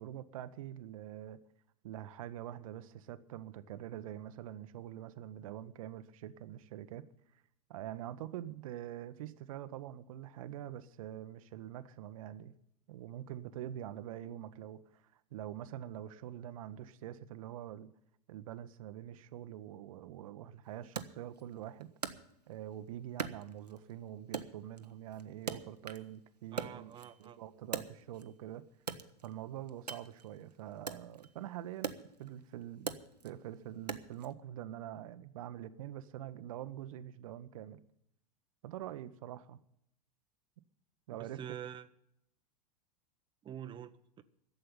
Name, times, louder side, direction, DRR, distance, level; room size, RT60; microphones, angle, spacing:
voice 1, 0.0-1.4 1.8-7.1 7.7-12.5 12.9-17.9 18.3-21.9 22.5-28.6 29.2-33.0 33.2-37.8 38.6-39.6 41.1-41.4, right 12 dB, 60° right, 0.8 m, -45 dB
Wood, 21.0-22.7 23.2-23.9 24.3-26.2 26.4-28.4 28.8-34.3, right 5 dB, 90° right, 0.9 m, -43 dB
voice 2, 26.5-27.4 41.2-41.9 43.4-44.2, right 9 dB, 25° right, 0.8 m, -46 dB
12.0 x 7.7 x 9.9 m
figure-of-eight pair, 90°, 20 cm